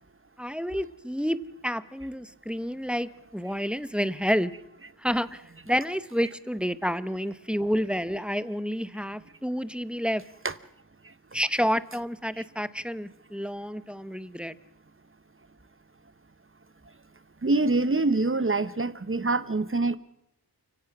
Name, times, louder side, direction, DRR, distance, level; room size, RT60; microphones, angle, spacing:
voice 1, 0.4-4.5 5.0-10.2 11.3-14.6, equal, 5° right, 15 dB, 0.8 m, -29 dB
voice 2, 17.4-20.0, right 3 dB, 35° right, 15 dB, 1.0 m, -25 dB
29.5 x 17.0 x 6.1 m, 0.82 s
wide cardioid pair, 85°, 38 cm